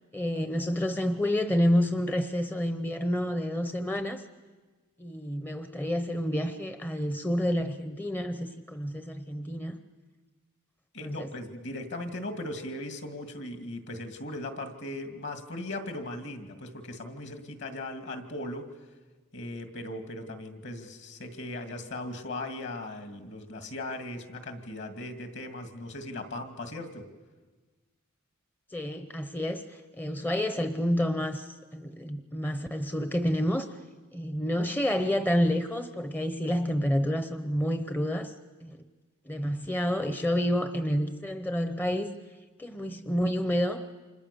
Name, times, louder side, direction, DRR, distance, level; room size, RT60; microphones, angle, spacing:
voice 1, 0.1-4.2 5.0-9.8 11.0-11.3 28.7-33.7 34.1-38.3 38.6-38.8 39.3-42.1 42.6-43.9, equal, 10° left, 9 dB, 0.8 m, -29 dB
voice 2, 10.9-18.7 19.3-27.1, left 1 dB, 55° left, 7 dB, 2.4 m, -38 dB
29.5 x 26.5 x 6.9 m, 1.3 s
head